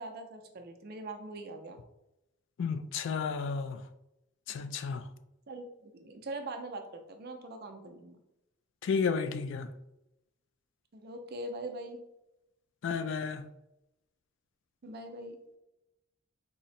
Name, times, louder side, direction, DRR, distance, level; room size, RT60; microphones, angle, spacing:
voice 1, 0.0-1.8 4.5-4.6 5.5-8.2 10.9-12.0 14.8-15.4, right 2 dB, 50° right, 0.5 m, -42 dB
voice 2, 2.6-3.8 4.5-5.0 8.8-9.7 12.8-13.5, left 5 dB, 60° left, 0.3 m, -32 dB
3.6 x 2.0 x 4.1 m
head